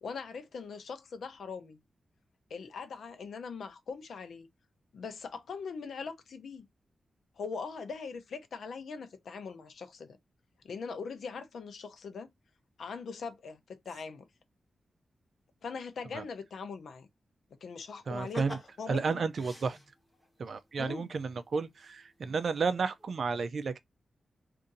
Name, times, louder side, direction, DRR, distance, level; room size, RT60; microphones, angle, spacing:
voice 1, 0.0-1.8 2.5-4.5 4.9-6.7 7.4-10.2 10.6-12.3 12.8-14.3 15.6-17.1 17.6-18.5 18.8-19.2 20.8-21.1, left 5 dB, 90° left, 0.7 m, -41 dB
sound 1, 18.1-20.3 21.7-21.8 22.2-22.7 23.0-23.1, equal, ahead, 1.1 m, -46 dB
voice 2, 18.1-18.6 18.9-19.8 20.4-23.8, right 5 dB, 55° right, 0.4 m, -32 dB
2.6 x 2.6 x 3.8 m
wide cardioid pair, 155°, 0 cm